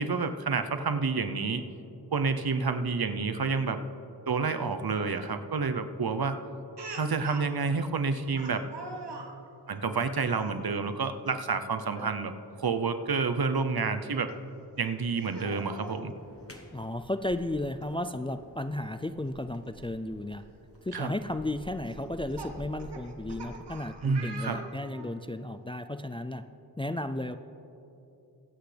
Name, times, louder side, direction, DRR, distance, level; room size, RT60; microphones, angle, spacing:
voice 1, 0.0-1.6 2.1-3.8 4.3-6.4 7.0-8.6 9.7-12.3 12.6-14.3 14.8-16.1 20.9-21.1 24.0-24.6, right 4 dB, 65° right, 9 dB, 0.7 m, -29 dB
Speech, 6.8-7.5 8.4-9.3 10.3-10.6 11.8-12.1 12.5-12.6 14.3-14.4 15.2-16.1 17.4-17.5 17.8-17.9 19.8-19.9 20.5-20.8 21.9-25.2, right 3 dB, 80° right, 1.1 m, -43 dB
sound 1, 16.2-23.4, left 1 dB, 35° left, 1.2 m, -51 dB
voice 2, 16.7-20.4 20.8-26.4 26.8-27.4, left 1 dB, 15° left, 10 dB, 0.3 m, -34 dB
23.5 x 8.3 x 3.4 m, 2.9 s
wide cardioid pair, 50°, 40 cm